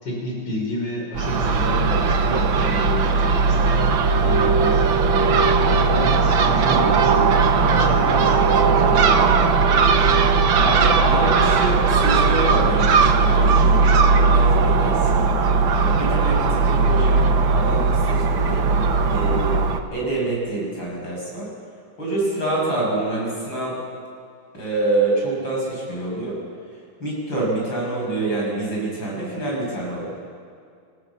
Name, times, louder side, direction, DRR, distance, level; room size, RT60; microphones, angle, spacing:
voice 1, 0.0-5.3 5.9-9.3, left 1 dB, 65° left, -2 dB, 6.1 m, -30 dB
Crow / Gull seagull, 1.2-19.8, right 4 dB, 85° right, 1.9 m, -18 dB
voice 2, 10.6-15.2 15.7-18.6 19.1-19.6 19.9-21.5 22.0-23.8 24.5-26.4 27.0-30.0, right 2 dB, 85° left, -3 dB, 7.8 m, -26 dB
26.0 x 16.0 x 7.2 m, 2.2 s
omnidirectional pair, 2.1 m